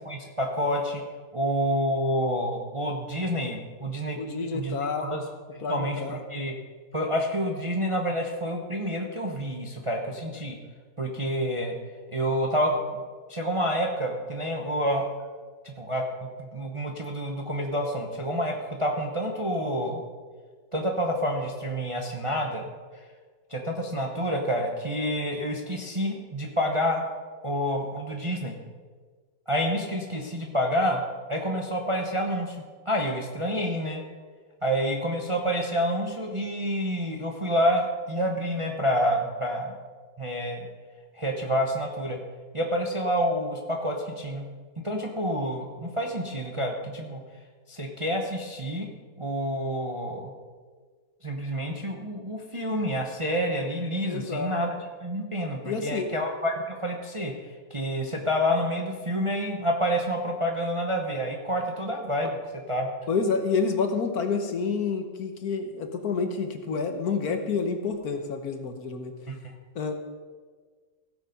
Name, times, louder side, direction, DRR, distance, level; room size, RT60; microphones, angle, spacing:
voice 1, 0.0-1.0 1.3-4.2 4.5-5.2 5.5-6.5 6.9-10.6 11.0-11.7 12.1-12.7 13.3-15.0 15.6-20.0 20.7-22.7 23.5-27.0 27.4-28.6 29.5-31.0 31.3-32.6 32.8-34.0 34.6-39.7 40.2-40.7 41.1-42.2 42.5-44.4 44.8-47.2 47.7-48.9 49.2-50.3 51.2-57.3 57.7-62.4 62.7-62.9 69.3-69.4, equal, 25° right, 1 dB, 0.7 m, -28 dB
voice 2, 4.2-5.1 5.6-6.2 54.0-54.5 55.6-56.1 63.1-69.1 69.7-69.9, left 5 dB, 60° left, 6 dB, 1.4 m, -28 dB
16.0 x 6.9 x 5.3 m, 1.5 s
omnidirectional pair, 1.9 m